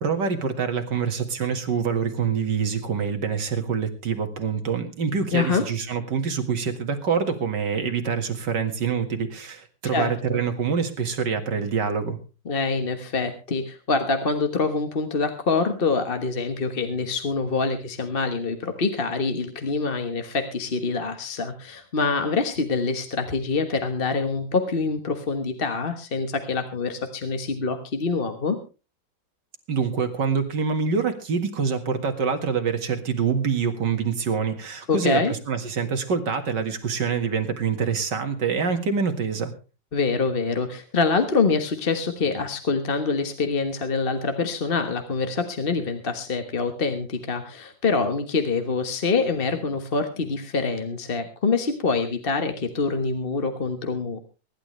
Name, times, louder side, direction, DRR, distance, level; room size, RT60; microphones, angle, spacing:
voice 1, 0.0-12.2 29.7-35.2 35.5-39.5, right 6 dB, 80° right, 7 dB, 2.5 m, -25 dB
voice 2, 5.3-5.6 9.8-10.4 12.4-28.6 34.9-35.3 39.9-54.2, left 4 dB, 35° left, 7 dB, 1.4 m, -25 dB
24.0 x 11.5 x 3.2 m, 0.32 s
omnidirectional pair, 1.9 m